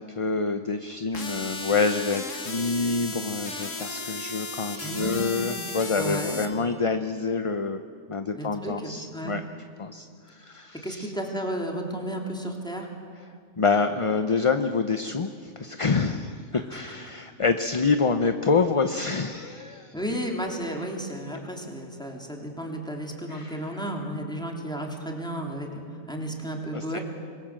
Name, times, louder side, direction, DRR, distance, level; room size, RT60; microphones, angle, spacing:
voice 1, 0.0-7.8 8.1-9.4 9.8-11.1 13.6-19.9 23.3-23.6 26.7-27.0, left 4 dB, 30° left, 8 dB, 0.7 m, -27 dB
sound 1, 1.1-6.5, left 3 dB, 80° left, 2.5 m, -35 dB
voice 2, 4.8-5.7 6.0-6.4 8.3-9.4 10.8-12.9 16.5-16.8 19.9-27.0, right 1 dB, 5° left, 0 dB, 3.4 m, -33 dB
26.5 x 21.5 x 7.6 m, 2.2 s
omnidirectional pair, 1.3 m